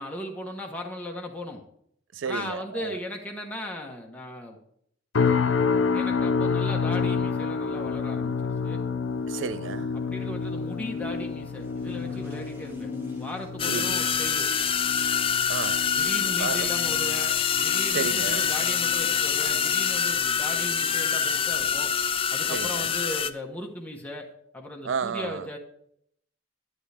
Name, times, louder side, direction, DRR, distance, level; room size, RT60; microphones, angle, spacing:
voice 1, 0.0-1.6 2.2-4.6 5.9-8.8 9.9-12.9 13.2-14.5 15.9-21.9 22.3-24.3 24.5-25.6, left 1 dB, 10° left, 1.2 m, -37 dB
voice 2, 2.1-3.0 9.3-9.9 13.7-14.0 15.5-15.9 16.4-16.7 17.9-18.5 22.4-22.9 24.8-25.5, right 6 dB, 75° right, 0.4 m, -32 dB
sound 1, 5.1-20.4 20.7-21.1 21.6-21.8, left 5 dB, 80° left, 0.5 m, -30 dB
sound 2, 8.2-15.3, left 1 dB, 15° right, 1.7 m, -49 dB
sound 3, 13.6-23.3, left 7 dB, 30° left, 0.5 m, -25 dB
11.0 x 11.0 x 3.4 m
head